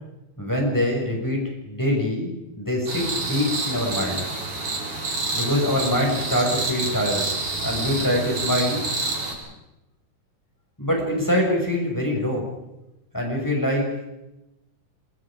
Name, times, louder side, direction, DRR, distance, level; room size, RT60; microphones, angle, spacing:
voice 1, 0.4-1.4 1.6-4.2 5.3-7.3 7.6-8.8 10.8-12.4 13.1-13.9, left 1 dB, 5° left, 0 dB, 6.3 m, -24 dB
sound 1, 2.9-9.3, right 3 dB, 45° right, 5.5 m, -28 dB
27.0 x 23.0 x 5.1 m, 0.93 s
omnidirectional pair, 3.6 m